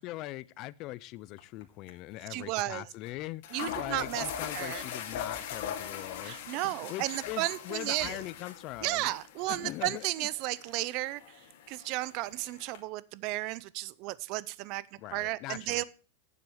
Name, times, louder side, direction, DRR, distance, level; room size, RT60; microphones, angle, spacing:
voice 1, 0.0-9.1 9.5-10.3 15.0-15.8, left 17 dB, 35° left, 0.5 m, -41 dB
sound 1, 1.4-1.6 1.9-2.0 3.0-3.1 3.4-12.8, left 8 dB, 50° left, 2.3 m, -41 dB
voice 2, 2.3-2.8 3.5-4.2 4.5-4.8 6.2-8.2 8.8-11.2 11.7-14.8 15.1-15.8, right 18 dB, 35° right, 0.5 m, -33 dB
9.4 x 7.7 x 7.0 m
supercardioid pair, 165°, 0 cm